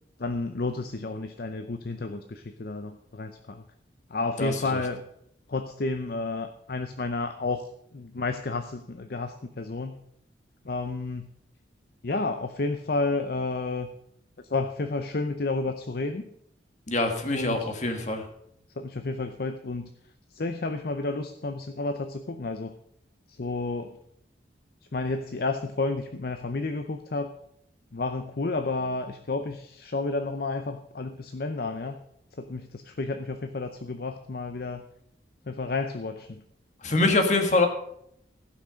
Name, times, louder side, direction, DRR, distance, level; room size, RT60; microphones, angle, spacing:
voice 1, 0.2-3.6 4.1-5.0 5.5-7.6 7.9-10.0 10.6-11.3 12.0-13.9 14.5-16.2 17.3-17.7 18.8-19.9 20.3-22.8 23.3-24.0 24.9-27.3 27.9-32.0 32.4-34.8 35.5-36.4, left 3 dB, 55° left, 8 dB, 0.6 m, -31 dB
voice 2, 16.9-18.2 36.8-37.7, left 2 dB, 40° left, 5 dB, 1.7 m, -24 dB
15.5 x 5.9 x 6.3 m, 0.73 s
head